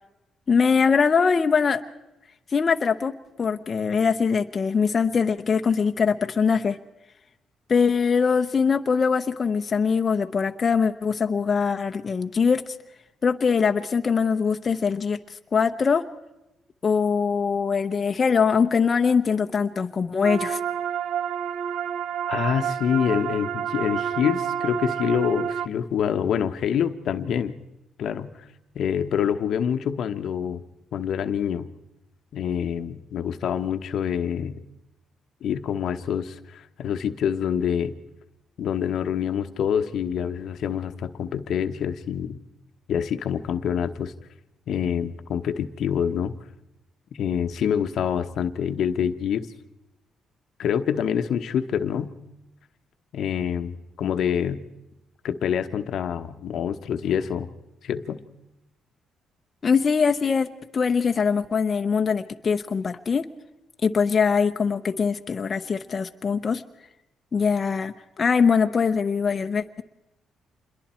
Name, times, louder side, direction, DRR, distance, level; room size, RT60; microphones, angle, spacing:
voice 1, 0.5-1.8 2.5-3.1 3.4-6.8 7.7-12.6 13.2-15.2 15.5-16.0 16.8-20.6 59.6-63.2 63.8-66.6 67.3-69.8, left 5 dB, 40° left, 6 dB, 0.9 m, -22 dB
sound 1, 20.2-25.7, right 8 dB, 70° right, 0.8 m, -29 dB
voice 2, 22.3-27.6 28.0-28.5 28.7-30.6 30.9-31.7 32.3-34.6 35.4-37.9 38.6-42.4 42.9-44.1 44.7-46.3 47.2-49.5 50.6-52.1 53.1-54.6 55.2-57.5 57.8-58.2, left 8 dB, 70° left, 9 dB, 1.1 m, -26 dB
27.0 x 22.0 x 4.5 m, 0.92 s
cardioid pair, 90°, 0 cm